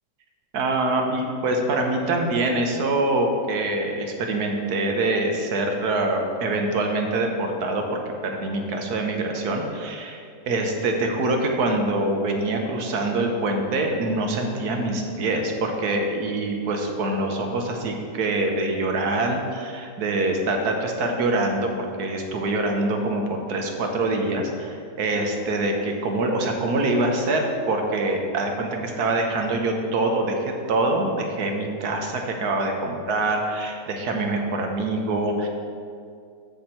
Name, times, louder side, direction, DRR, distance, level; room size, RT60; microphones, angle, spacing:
voice 1, 0.5-7.8 8.2-35.5, right 2 dB, 65° right, 3 dB, 1.4 m, -25 dB
13.0 x 4.4 x 4.5 m, 2.3 s
omnidirectional pair, 1.9 m